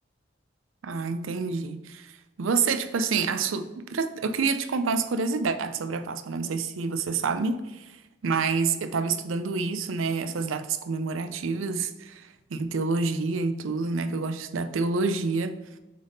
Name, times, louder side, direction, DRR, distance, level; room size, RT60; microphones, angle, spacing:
voice 1, 0.8-2.1 2.4-7.9 8.2-15.6, right 4 dB, 90° right, 9 dB, 0.5 m, -28 dB
7.5 x 3.5 x 4.0 m, 1.1 s
head